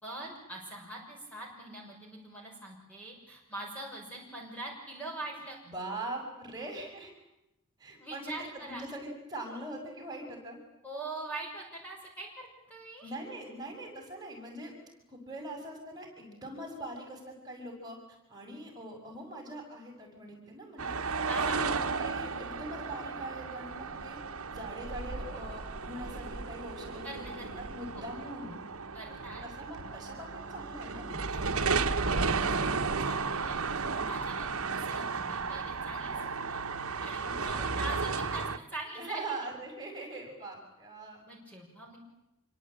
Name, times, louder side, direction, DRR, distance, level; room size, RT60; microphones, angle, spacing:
voice 1, 0.0-5.6 8.0-8.8 10.8-13.1 21.3-21.7 27.0-27.5 27.9-28.0 28.9-29.5 31.2-31.9 32.4-32.5 33.0-34.5 34.8-36.6 37.0-39.4 41.2-42.0, right 2 dB, 5° left, -1 dB, 6.3 m, -43 dB
voice 2, 5.7-7.1 7.8-8.3 8.7-10.6 13.0-14.7 15.1-18.0 18.3-21.0 21.4-21.7 22.0-24.2 24.5-28.5 29.1-31.2 32.6-32.9 37.2-37.7 38.1-38.6 39.0-41.2, right 1 dB, 20° right, 1 dB, 6.7 m, -42 dB
sound 1, 20.8-38.6, right 4 dB, 70° right, 1.3 m, -34 dB
27.0 x 24.0 x 8.9 m, 0.90 s
head